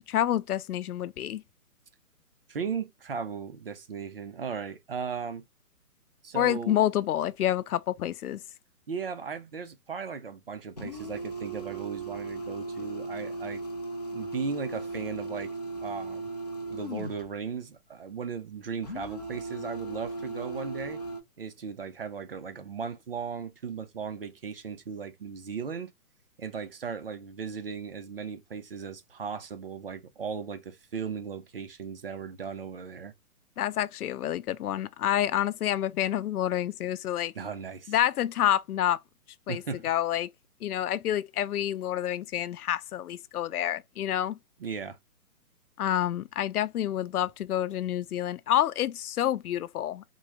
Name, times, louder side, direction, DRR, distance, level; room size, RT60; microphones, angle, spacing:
voice 1, 0.1-1.4 6.3-8.4 33.6-37.3 37.9-39.0 39.5-40.3 40.6-44.4 45.8-50.0, left 11 dB, 85° left, 0.5 m, -28 dB
voice 2, 2.5-5.4 6.2-6.8 8.9-13.6 14.1-15.5 15.8-16.3 16.7-21.0 21.4-25.9 26.4-33.1 37.3-37.9 39.5-39.9 44.6-45.0, right 6 dB, 45° right, 0.4 m, -37 dB
sound 1, 10.8-17.3 18.8-21.2, right 2 dB, 30° left, 0.4 m, -37 dB
3.7 x 2.1 x 2.8 m
hypercardioid pair, 160°, 43 cm